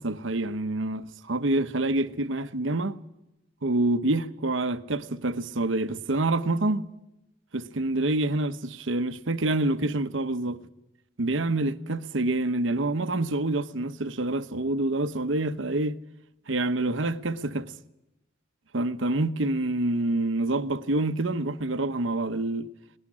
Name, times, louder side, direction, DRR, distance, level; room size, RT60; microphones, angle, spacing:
voice 1, 0.0-3.0 3.6-6.9 7.5-10.6 11.2-16.0 16.5-17.7 18.7-22.7, right 2 dB, 75° right, 1.0 m, -27 dB
20.0 x 18.0 x 8.6 m
head